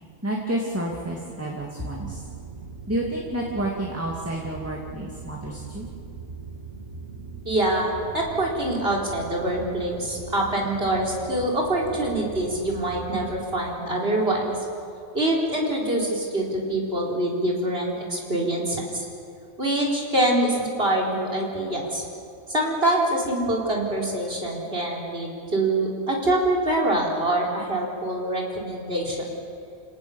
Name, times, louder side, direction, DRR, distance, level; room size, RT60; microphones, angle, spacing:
voice 1, 0.2-2.2 2.9-5.9, right 1 dB, 10° right, -2 dB, 2.4 m, -29 dB
sound 1, 1.9-13.4, right 4 dB, 90° right, 2.3 m, -40 dB
voice 2, 7.4-14.5 15.1-19.1 19.6-22.0 22.5-29.3, right 1 dB, 55° right, -2 dB, 4.6 m, -25 dB
28.5 x 18.5 x 7.2 m, 2.5 s
omnidirectional pair, 1.2 m